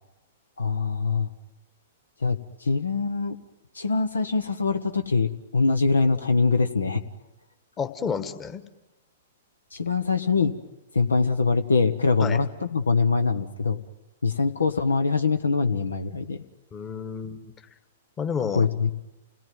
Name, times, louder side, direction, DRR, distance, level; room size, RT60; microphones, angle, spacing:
voice 1, 0.6-1.3 2.2-3.4 3.7-7.0 9.7-10.5 10.9-13.8 14.2-16.4 18.5-18.9, left 4 dB, 75° left, 9 dB, 1.3 m, -23 dB
voice 2, 7.8-8.6 12.2-12.4 16.7-17.5 18.2-18.6, left 6 dB, 20° left, 9 dB, 1.7 m, -30 dB
29.5 x 18.5 x 9.3 m, 1.0 s
figure-of-eight pair, 110°, 0 cm